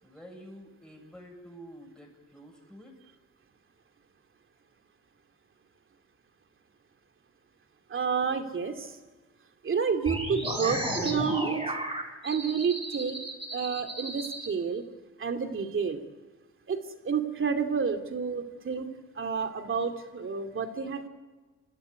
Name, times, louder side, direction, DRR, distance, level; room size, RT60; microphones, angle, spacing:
voice 1, 0.0-3.0, equal, ahead, 1 dB, 7.6 m, -49 dB
voice 2, 7.9-9.0 9.6-11.6 12.2-13.2 13.5-14.8 15.2-16.0 16.7-18.9 19.2-21.1, right 6 dB, 40° right, 6 dB, 2.7 m, -30 dB
sound 1, 10.1-14.5, right 1 dB, 15° right, 6.2 m, -33 dB
28.5 x 13.5 x 9.7 m, 1.3 s
cardioid pair, 90°, 30 cm